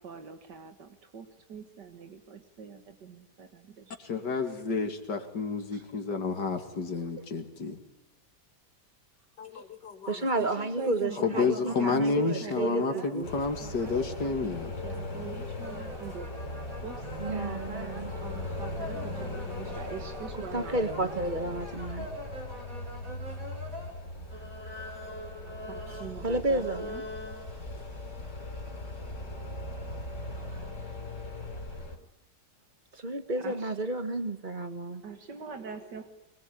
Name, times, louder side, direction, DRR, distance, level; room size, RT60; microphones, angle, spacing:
voice 1, 0.0-4.0 10.4-13.1 13.6-16.3 16.8-21.1 22.0-22.1 25.7-27.4 33.4-33.7 35.0-36.1, right 5 dB, 85° right, 2.4 m, -43 dB
voice 2, 4.0-7.8 9.4-15.0, left 4 dB, 90° left, 2.9 m, -31 dB
voice 3, 10.1-13.3 17.2-18.1 20.5-22.1 26.2-26.8 32.9-35.0, right 2 dB, 30° right, 1.5 m, -31 dB
sound 1, 13.2-32.0, left 2 dB, 45° left, 4.4 m, -39 dB
sound 2, 15.6-23.9 24.3-27.5, equal, 50° right, 5.4 m, -44 dB
23.5 x 21.0 x 9.9 m
omnidirectional pair, 1.8 m